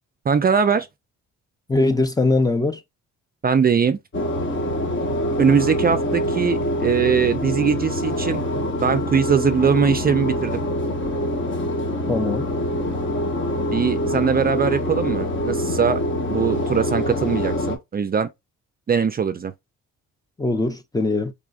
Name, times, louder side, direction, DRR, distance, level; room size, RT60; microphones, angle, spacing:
voice 1, 0.3-0.9 3.4-4.0 5.4-8.4 8.8-10.6 13.7-16.0 16.3-18.3 18.9-19.5, right 6 dB, 30° right, 0.5 m, -21 dB
voice 2, 1.7-2.8 12.1-12.5 20.4-21.3, left 2 dB, 15° left, 0.6 m, -21 dB
sound 1, 4.1-17.8, equal, 40° left, 1.4 m, -25 dB
3.6 x 3.4 x 2.4 m
cardioid pair, 90°, 30 cm